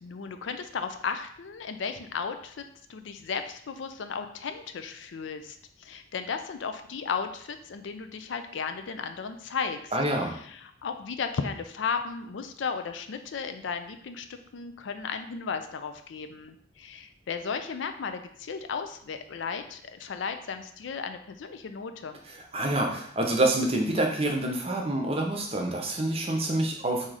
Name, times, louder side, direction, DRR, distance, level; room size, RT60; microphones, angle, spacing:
voice 1, 0.0-9.9 10.3-22.2, left 5 dB, 80° left, 8 dB, 0.4 m, -35 dB
voice 2, 9.9-10.3 22.5-27.1, right 1 dB, 30° right, 1 dB, 0.7 m, -27 dB
3.7 x 2.7 x 4.7 m, 0.64 s
head